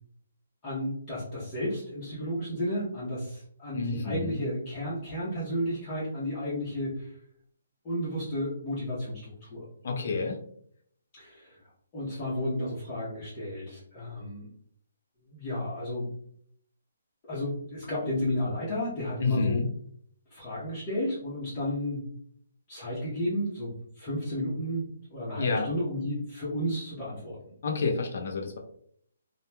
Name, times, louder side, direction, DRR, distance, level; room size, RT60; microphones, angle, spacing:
voice 1, 0.6-7.2 7.8-9.6 11.1-11.6 11.9-14.5 15.3-16.1 17.2-19.7 20.3-22.1 22.7-27.5, left 1 dB, 25° left, -9 dB, 0.9 m, -32 dB
voice 2, 3.7-4.4 9.8-10.4 19.2-19.6 25.4-25.7 27.6-28.6, left 4 dB, 55° left, 2 dB, 0.6 m, -29 dB
3.0 x 2.3 x 2.2 m, 0.64 s
hypercardioid pair, 165°, 0 cm